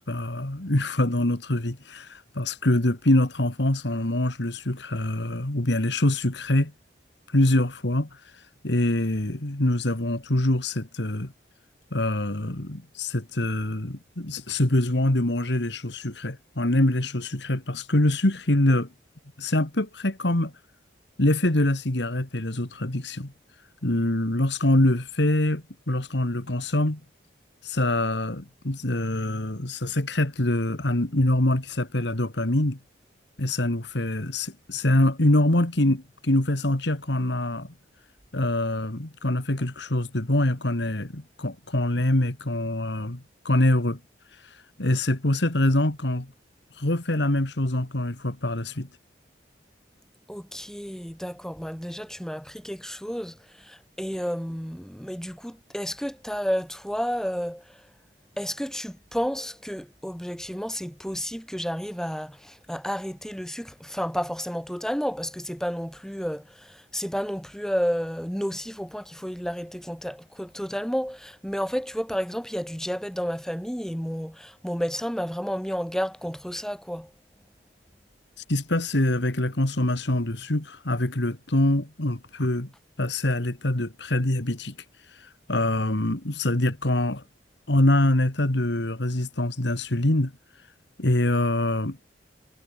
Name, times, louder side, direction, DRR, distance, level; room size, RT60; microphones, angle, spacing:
voice 1, 0.0-6.7 7.3-8.1 8.6-11.3 11.9-18.9 19.4-20.5 21.2-23.3 23.8-27.0 27.6-32.8 33.4-37.7 38.3-44.0 44.4-46.3 46.8-48.9 78.5-82.7 83.0-84.7 85.1-87.2 87.7-90.3 91.0-92.0, left 1 dB, 70° left, 2.3 m, -24 dB
voice 2, 50.3-57.9 58.4-77.1, equal, 5° left, 6.4 m, -31 dB
head